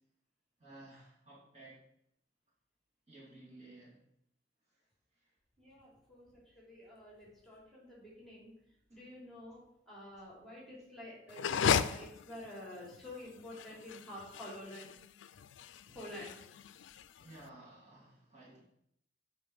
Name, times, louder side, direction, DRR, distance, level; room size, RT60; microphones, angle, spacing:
voice 1, 0.6-1.8 3.1-4.0 4.7-4.8 5.1-5.3 17.2-18.6, right 2 dB, 40° right, -7 dB, 2.7 m, -55 dB
voice 2, 5.6-6.3 6.5-8.5 8.9-9.6 9.9-14.9 15.9-16.4, left 1 dB, ahead, -5 dB, 2.9 m, -49 dB
sound 1, 11.3-17.4, left 7 dB, 85° left, 0.4 m, -36 dB
7.9 x 5.1 x 4.7 m, 0.76 s
head